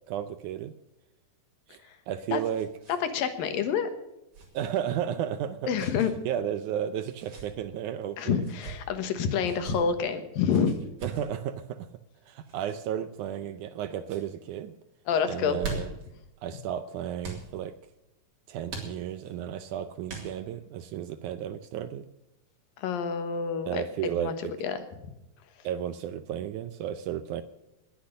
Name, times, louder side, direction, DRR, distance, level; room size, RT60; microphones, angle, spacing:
voice 1, 0.1-0.7 1.7-1.8 2.1-2.7 4.5-5.7 6.0-8.5 11.0-11.9 12.3-14.7 15.3-16.0 16.4-17.8 18.5-22.1 23.7-24.5 25.6-27.4, right 10 dB, 75° right, 11 dB, 1.9 m, -33 dB
sound 1, 1.7-3.0 3.3-3.4 4.3-4.6 5.7-6.1 7.0-7.5 8.4-8.8 9.4-9.8 10.5-11.3 12.4-12.8 13.4-13.8 14.0-14.3 15.3-16.1 17.2-17.5 18.7-19.3 20.1-20.6, right 4 dB, 50° right, 4.4 m, -40 dB
voice 2, 3.0-3.9 5.7-6.1 8.2-10.8 15.1-15.6 22.8-24.3 24.6-24.8, left 7 dB, 80° left, 9 dB, 3.1 m, -28 dB
20.5 x 8.4 x 6.6 m, 0.93 s
omnidirectional pair, 4.0 m